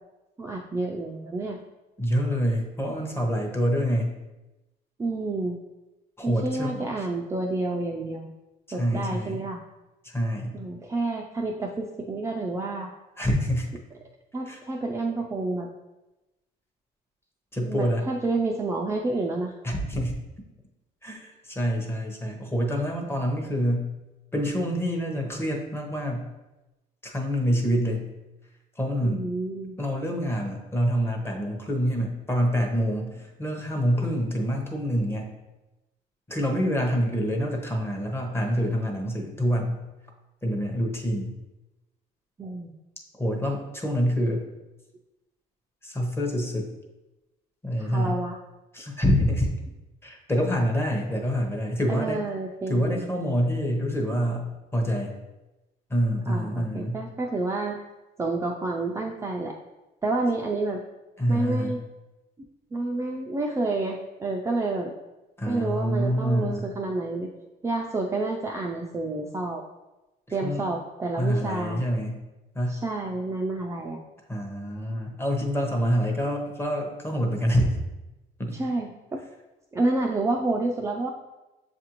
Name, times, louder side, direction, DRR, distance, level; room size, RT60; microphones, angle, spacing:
voice 1, 0.4-1.6 5.0-5.6 6.2-8.3 8.7-9.6 10.5-12.9 14.3-15.7 17.6-19.6 29.0-29.8 42.4-42.7 47.8-48.4 51.9-53.0 56.3-57.8 58.2-59.5 60.0-60.8 61.3-61.8 62.7-64.9 65.5-67.3 67.6-69.6 70.3-71.8 72.7-74.0 78.5-79.2 79.7-81.1, right 2 dB, 15° right, 0 dB, 0.3 m, -29 dB
voice 2, 2.0-4.1 6.2-6.9 8.7-9.4 10.0-10.5 13.2-13.7 14.5-14.6 17.5-18.0 19.6-20.1 21.0-23.9 24.3-26.2 27.0-28.1 28.8-29.3 29.8-35.3 36.3-39.8 40.4-41.3 43.1-44.4 45.8-46.7 47.6-48.2 48.7-49.5 50.0-52.2 52.7-55.1 55.9-57.0 61.2-61.8 65.4-66.7 70.4-70.7 71.2-72.2 72.5-72.8 74.3-77.7 78.4-78.6, equal, 15° left, 1 dB, 0.8 m, -26 dB
7.0 x 2.5 x 2.9 m, 1.0 s
cardioid pair, 110°, 17 cm